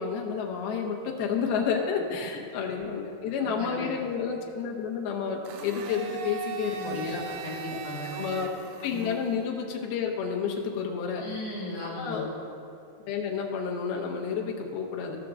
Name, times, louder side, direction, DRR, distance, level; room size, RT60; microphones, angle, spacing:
voice 1, 0.0-7.3 7.7-7.8 8.1-8.5 8.8-11.2 11.9-12.3 13.1-15.3, left 6 dB, 90° left, 0 dB, 2.9 m, -30 dB
voice 2, 3.4-3.9 6.7-8.1 8.9-9.1 11.2-12.3, left 2 dB, 50° left, -6 dB, 2.7 m, -37 dB
Domestic sounds home sounds, 5.4-9.5, right 8 dB, 80° right, 1.8 m, -39 dB
15.5 x 6.0 x 3.7 m, 2.6 s
omnidirectional pair, 4.3 m